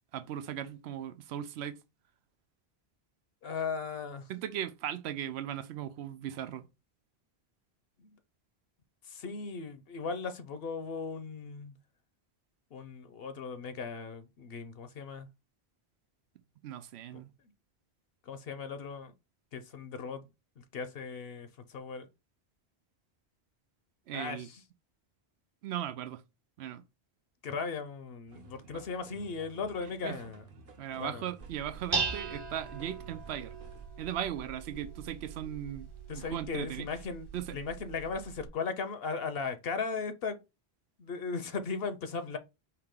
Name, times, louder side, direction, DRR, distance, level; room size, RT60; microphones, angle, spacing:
voice 1, 0.1-1.8 4.3-6.7 16.6-17.3 24.1-24.5 25.6-26.2 26.6-26.8 30.0-30.2 30.8-33.6 34.0-35.9 36.3-36.8 37.3-37.5, right 10 dB, 90° right, 0.8 m, -38 dB
voice 2, 3.4-4.3 8.0-8.2 9.0-11.8 12.7-15.3 17.1-17.2 18.2-19.1 19.5-20.3 20.6-22.1 24.1-24.6 27.4-30.5 31.0-31.3 36.1-40.4 41.0-42.4, left 5 dB, 70° left, 0.9 m, -37 dB
sound 1, 28.3-33.9, right 4 dB, 60° right, 1.0 m, -55 dB
Dishes pots and pans, 31.4-38.5, right 4 dB, 25° right, 0.8 m, -40 dB
4.8 x 2.9 x 3.6 m
omnidirectional pair, 1.1 m